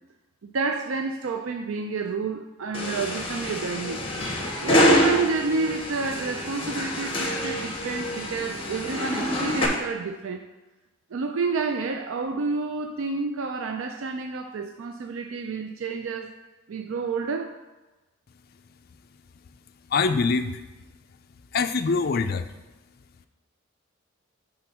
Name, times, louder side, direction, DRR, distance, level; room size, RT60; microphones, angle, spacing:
voice 1, 0.4-4.0 4.6-10.4 11.1-16.3 16.7-17.6, right 4 dB, 70° right, 5 dB, 0.4 m, -29 dB
sound 1, 2.7-9.7, left 1 dB, 25° left, 1.0 m, -26 dB
voice 2, 19.9-20.6 21.5-22.5, left 4 dB, 45° left, 9 dB, 0.4 m, -24 dB
6.1 x 3.7 x 5.8 m, 1.1 s
head